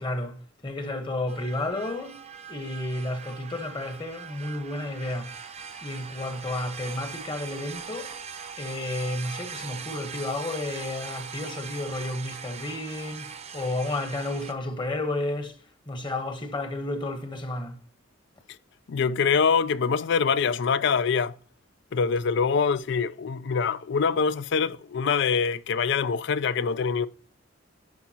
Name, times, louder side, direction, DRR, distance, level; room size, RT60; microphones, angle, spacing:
voice 1, 0.0-2.2 2.5-5.3 5.8-8.2 8.6-15.6 15.9-17.8, left 2 dB, 25° left, 1.1 m, -32 dB
sound 1, 1.3-14.5, right 6 dB, 35° right, 0.7 m, -41 dB
voice 2, 18.9-21.3 21.9-27.1, left 5 dB, 65° left, 0.4 m, -24 dB
10.5 x 5.6 x 2.9 m
head